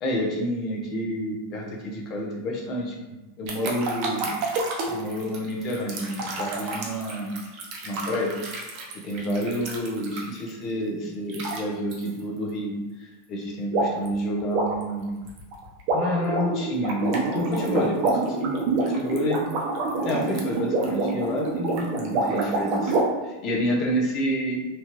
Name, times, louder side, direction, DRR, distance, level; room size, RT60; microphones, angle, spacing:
voice 1, 0.0-4.3 4.9-7.3 7.8-8.7 8.9-15.3 15.9-19.4 20.0-23.0 23.2-24.6, equal, 40° left, -1 dB, 0.7 m, -29 dB
sound 1, 3.5-10.5 11.3-11.6 11.9-12.1 13.7-14.1 14.4-23.0, right 3 dB, 50° right, 0.7 m, -28 dB
2.9 x 2.4 x 3.0 m, 1.1 s
supercardioid pair, 140°, 0 cm